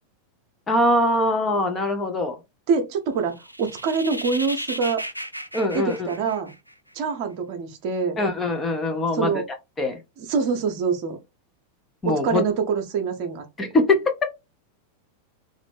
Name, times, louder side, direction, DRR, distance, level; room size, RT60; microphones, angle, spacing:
voice 1, 0.7-2.4 5.5-6.0 8.2-9.3 9.8-10.0 12.0-12.4 13.6-14.1, left 1 dB, 20° left, 0.8 m, -22 dB
voice 2, 2.7-5.0 5.7-6.5 6.9-8.2 9.1-9.5 10.2-11.2 12.0-13.4, right 5 dB, 45° right, 0.8 m, -25 dB
sound 1, 3.3-6.9, equal, 90° right, 0.3 m, -35 dB
3.0 x 2.5 x 3.4 m
figure-of-eight pair, 90°, 0 cm